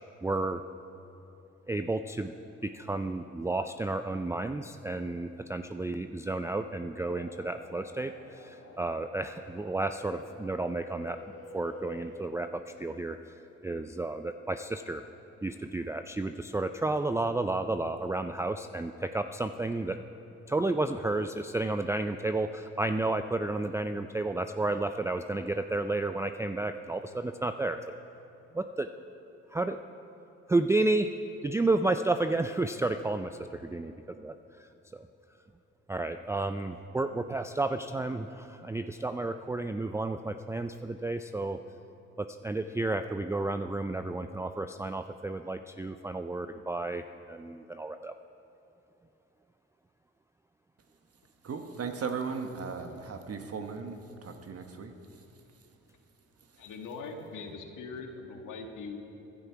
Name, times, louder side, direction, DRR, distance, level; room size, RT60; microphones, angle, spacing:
voice 1, 0.2-0.6 1.7-2.3 2.6-11.2 11.5-13.2 13.6-15.0 15.4-20.0 20.5-27.8 28.5-28.9 29.5-29.8 30.5-31.1 31.4-35.1 35.9-41.6 42.2-48.1, right 2 dB, 10° right, 8 dB, 0.4 m, -32 dB
sound 1, 7.1-12.2, left 3 dB, 50° left, 2.5 m, -48 dB
voice 2, 51.4-54.0 54.2-54.9, right 5 dB, 45° right, 6 dB, 1.3 m, -36 dB
voice 3, 56.6-59.0, left 4 dB, 70° left, 4 dB, 1.6 m, -41 dB
15.0 x 11.0 x 4.6 m, 3.0 s
supercardioid pair, 55°, 32 cm